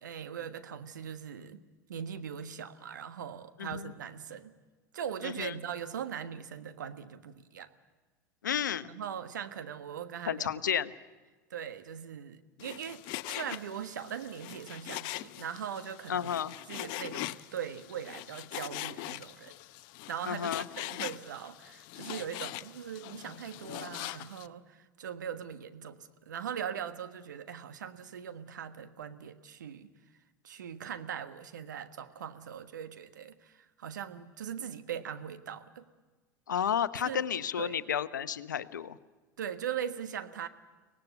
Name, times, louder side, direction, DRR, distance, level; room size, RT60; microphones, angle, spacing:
voice 1, 0.0-1.6 1.9-4.5 4.9-7.7 8.8-10.5 11.5-16.3 16.7-19.5 20.1-29.9 30.4-35.8 37.0-37.2 37.6-37.8 39.4-40.5, right 8 dB, 75° right, 10 dB, 1.3 m, -40 dB
voice 2, 3.6-3.9 5.2-5.6 8.4-8.9 10.3-10.9 16.1-16.5 20.2-20.6 36.5-39.0, left 8 dB, 80° left, 15 dB, 0.8 m, -32 dB
Frying (food), 12.6-24.5, left 18 dB, 55° left, 0.7 m, -42 dB
24.0 x 18.5 x 8.2 m, 1.3 s
hypercardioid pair, 85°, 10 cm